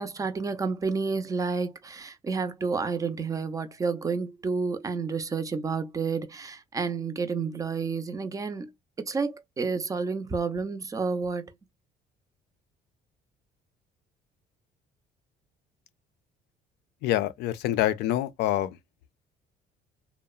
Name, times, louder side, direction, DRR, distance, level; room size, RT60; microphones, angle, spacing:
voice 1, 0.0-8.7 9.0-11.5, right 4 dB, 20° right, 0.4 m, -30 dB
voice 2, 17.0-18.8, left 13 dB, 80° left, 0.4 m, -26 dB
2.7 x 2.0 x 2.3 m
cardioid pair, 110°, 17 cm